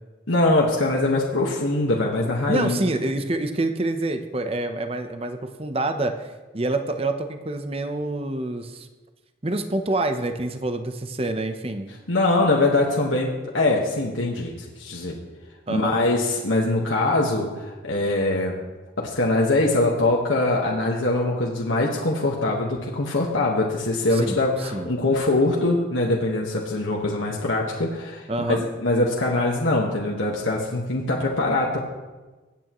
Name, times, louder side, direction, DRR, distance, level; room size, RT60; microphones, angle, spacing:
voice 1, 0.3-2.8 12.1-13.3 13.5-15.2 15.7-18.6 19.0-31.8, left 2 dB, 85° left, -2 dB, 1.5 m, -23 dB
voice 2, 2.5-8.9 9.4-11.9 15.7-16.0 24.1-24.9 28.3-28.6, right 2 dB, 30° right, 7 dB, 0.8 m, -27 dB
24.0 x 9.0 x 3.1 m, 1.2 s
head